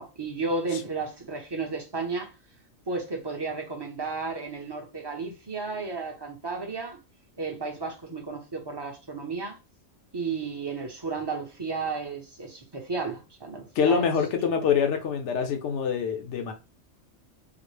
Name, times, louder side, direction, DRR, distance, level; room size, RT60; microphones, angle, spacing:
voice 1, 0.0-2.3 2.9-7.0 7.4-9.6 10.1-14.1 14.4-14.6, right 4 dB, 25° right, 0.6 m, -33 dB
voice 2, 13.7-16.5, left 7 dB, 70° left, 1.0 m, -25 dB
3.8 x 2.0 x 3.2 m
omnidirectional pair, 1.3 m